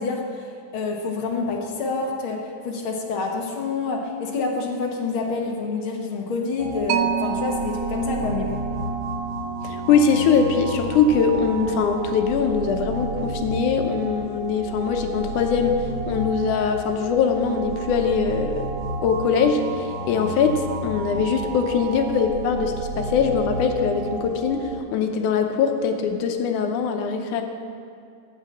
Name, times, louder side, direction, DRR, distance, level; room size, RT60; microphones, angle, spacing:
voice 1, 0.0-8.6, left 4 dB, 55° left, 0 dB, 1.7 m, -27 dB
sound 1, 6.6-24.8, right 2 dB, 60° right, 1.6 m, -32 dB
Mallet percussion, 6.9-14.0, right 7 dB, 80° right, 1.5 m, -32 dB
voice 2, 9.6-15.8 16.1-18.7 19.0-27.4, left 5 dB, 85° left, 5 dB, 2.4 m, -22 dB
15.0 x 5.7 x 7.2 m, 2.4 s
omnidirectional pair, 3.5 m